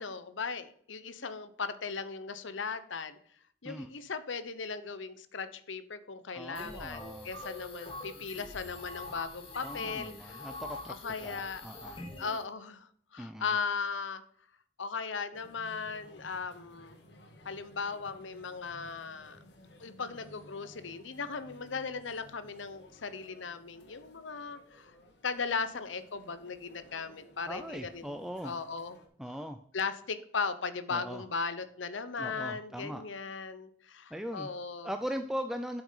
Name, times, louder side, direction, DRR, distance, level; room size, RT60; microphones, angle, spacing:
voice 1, 0.0-3.2 3.6-10.6 10.9-11.6 12.2-14.2 14.8-17.0 17.4-19.4 19.8-24.9 25.2-29.0 29.7-34.9, left 5 dB, 90° left, 12 dB, 0.9 m, -37 dB
voice 2, 6.3-7.3 9.6-10.9 11.2-12.0 13.2-13.5 27.5-28.5 29.2-29.6 30.9-31.2 32.2-33.0 34.1-34.5 34.8-35.8, equal, ahead, 7 dB, 0.4 m, -39 dB
sound 1, 6.5-12.4, left 2 dB, 30° left, 2.0 m, -44 dB
sound 2, 15.3-29.1, left 1 dB, 65° left, 1.9 m, -57 dB
8.6 x 6.1 x 5.6 m, 0.62 s
head